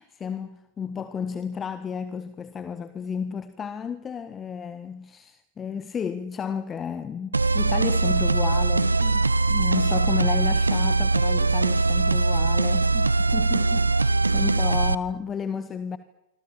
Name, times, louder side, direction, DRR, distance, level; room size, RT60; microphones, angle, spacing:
voice 1, 0.0-16.0, left 6 dB, 20° left, 1.5 m, -32 dB
sound 1, 7.3-14.9, right 3 dB, 80° right, 1.1 m, -21 dB
27.5 x 26.0 x 7.3 m
figure-of-eight pair, 100°, 0 cm